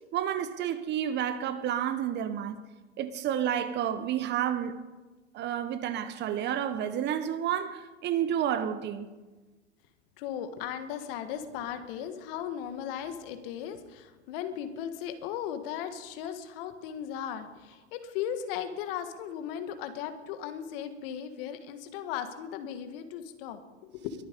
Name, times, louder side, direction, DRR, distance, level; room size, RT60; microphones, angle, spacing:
voice 1, 0.1-2.6 3.0-4.8 5.3-9.1, right 10 dB, 30° right, 0.9 m, -30 dB
voice 2, 10.2-24.1, left 9 dB, 55° left, 1.7 m, -37 dB
22.0 x 8.8 x 5.3 m
hypercardioid pair, 110°, 34 cm